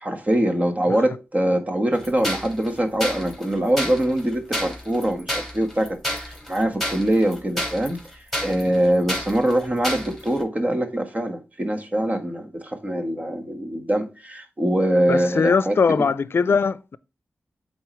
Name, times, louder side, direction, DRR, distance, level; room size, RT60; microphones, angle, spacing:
voice 1, 0.0-8.0 8.4-16.0, right 1 dB, 35° right, 1.5 m, -23 dB
sound 1, 2.0-10.4, equal, ahead, 3.6 m, -30 dB
voice 2, 15.1-17.0, left 5 dB, 65° left, 0.5 m, -20 dB
8.4 x 4.0 x 3.1 m
cardioid pair, 50°, 4 cm